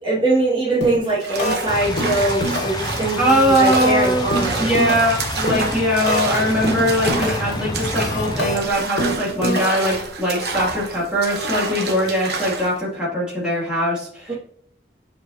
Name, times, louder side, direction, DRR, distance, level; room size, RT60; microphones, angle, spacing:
voice 1, 0.0-4.7 14.3-14.4, right 2 dB, 25° right, -10 dB, 2.4 m, -22 dB
sound 1, 0.8-1.1 1.4-1.7 2.0-2.9 3.1-6.4 6.6-7.5 7.8-10.0, left 1 dB, 75° left, 2.1 m, -25 dB
sound 2, 1.2-12.8, right 3 dB, 65° right, 1.1 m, -28 dB
sound 3, 1.7-8.6, left 2 dB, 25° left, 0.5 m, -29 dB
voice 2, 3.2-4.3 4.6-14.3, equal, 5° right, -8 dB, 3.0 m, -21 dB
7.7 x 5.3 x 3.0 m, 0.63 s
head